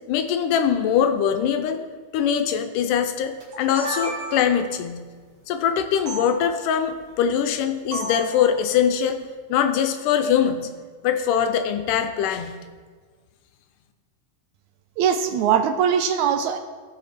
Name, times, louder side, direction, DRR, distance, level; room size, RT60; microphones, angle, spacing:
voice 1, 0.1-1.8 2.1-5.0 5.5-9.2 9.5-10.7 11.0-12.5, left 8 dB, 80° left, 7 dB, 2.1 m, -22 dB
sound 1, 3.4-4.7 6.1-6.2 7.9-8.3, right 1 dB, 50° right, 2.6 m, -31 dB
voice 2, 15.0-16.6, right 8 dB, 80° right, 7 dB, 1.8 m, -21 dB
17.0 x 5.8 x 4.1 m, 1.5 s
omnidirectional pair, 3.7 m